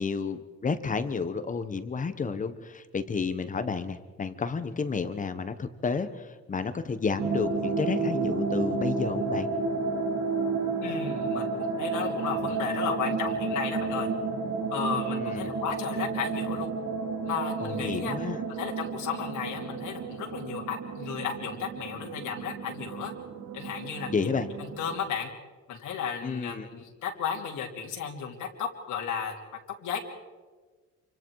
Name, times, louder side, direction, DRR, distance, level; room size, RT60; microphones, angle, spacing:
voice 1, 0.0-9.5 15.1-15.5 17.6-18.4 24.1-24.5 26.2-26.7, left 5 dB, 25° left, 11 dB, 1.1 m, -31 dB
sound 1, 7.2-25.0, right 4 dB, 75° right, 4.0 m, -31 dB
voice 2, 10.8-11.5 11.8-14.1 14.7-16.7 17.2-18.1 18.5-23.1 23.5-24.3 24.6-25.3 25.7-29.3 29.8-30.0, left 7 dB, 85° left, 0 dB, 3.0 m, -34 dB
28.0 x 24.5 x 4.7 m, 1.4 s
cardioid pair, 170°, 30 cm